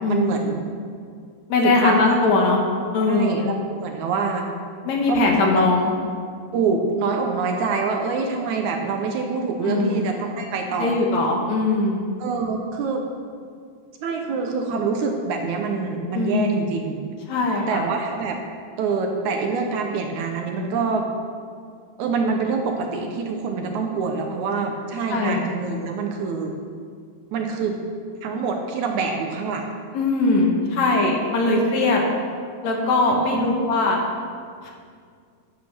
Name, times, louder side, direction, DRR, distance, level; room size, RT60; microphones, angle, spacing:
voice 1, 0.1-0.7 1.6-2.2 3.1-4.5 5.1-5.7 6.5-11.0 12.2-13.0 14.0-17.0 17.7-18.4 18.8-21.0 22.0-26.5 27.3-27.8 28.2-29.7 31.4-31.8 33.1-33.5, right 4 dB, 70° right, 3 dB, 2.0 m, -25 dB
voice 2, 1.5-2.6 2.9-3.4 4.8-5.9 9.6-10.1 10.8-12.0 16.1-16.6 17.3-17.8 25.1-25.4 29.9-32.0 32.6-34.0 34.6-34.7, left 3 dB, 65° left, 0 dB, 2.3 m, -20 dB
10.5 x 8.4 x 6.0 m, 2.1 s
omnidirectional pair, 3.9 m